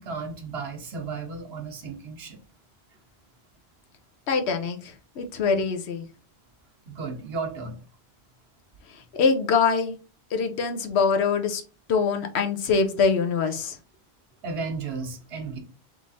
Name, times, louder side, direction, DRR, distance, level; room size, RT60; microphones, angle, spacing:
voice 1, 0.0-2.4 6.9-7.8 14.4-15.6, right 4 dB, 75° right, 1.1 m, -34 dB
voice 2, 4.3-6.0 9.1-9.9 10.3-11.6 11.9-13.8, left 5 dB, 80° left, 1.0 m, -24 dB
3.4 x 3.2 x 4.0 m
omnidirectional pair, 1.1 m